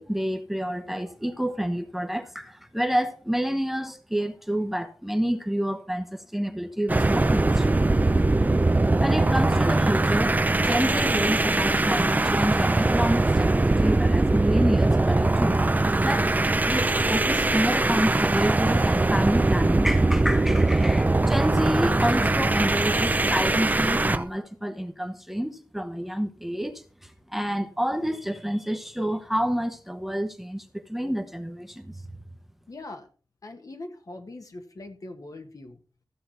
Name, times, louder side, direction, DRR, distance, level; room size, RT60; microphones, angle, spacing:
voice 1, 0.0-7.9 9.0-16.3 16.6-32.0, equal, 5° right, 1.0 m, -29 dB
sound 1, 6.9-24.2, right 2 dB, 25° right, 0.6 m, -22 dB
voice 2, 32.7-33.1 33.4-35.8, left 2 dB, 55° left, 1.7 m, -41 dB
14.5 x 7.6 x 4.5 m
wide cardioid pair, 90°, 7 cm